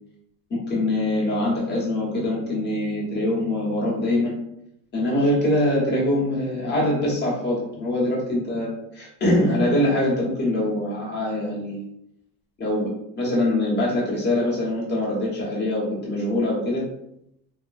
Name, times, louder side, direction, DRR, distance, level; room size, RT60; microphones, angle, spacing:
voice 1, 0.5-4.3 4.9-11.8 12.6-16.8, left 1 dB, 25° left, -5 dB, 1.2 m, -23 dB
2.9 x 2.2 x 2.5 m, 0.77 s
cardioid pair, 125°, 38 cm